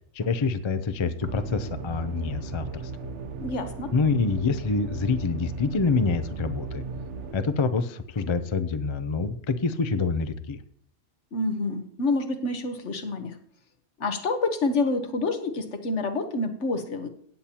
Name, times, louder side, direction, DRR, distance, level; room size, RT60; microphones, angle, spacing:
voice 1, 0.1-2.9 3.9-6.8 7.3-10.6, left 4 dB, 35° left, 11 dB, 0.4 m, -26 dB
sound 1, 1.2-7.3, right 4 dB, 70° right, 1.1 m, -36 dB
voice 2, 3.4-3.9 11.3-13.4 14.0-17.1, left 3 dB, 65° left, 7 dB, 1.4 m, -28 dB
16.5 x 8.5 x 2.9 m, 0.65 s
omnidirectional pair, 1.3 m